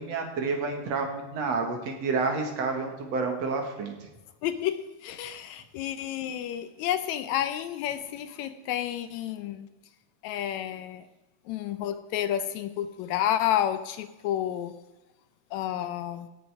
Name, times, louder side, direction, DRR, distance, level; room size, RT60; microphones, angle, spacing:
voice 1, 0.0-3.9, right 4 dB, 60° right, 3 dB, 2.7 m, -29 dB
voice 2, 4.4-9.7 10.2-11.0 11.5-14.7 15.5-16.3, left 11 dB, 75° left, 11 dB, 1.9 m, -30 dB
17.0 x 7.3 x 4.8 m, 1.1 s
omnidirectional pair, 3.5 m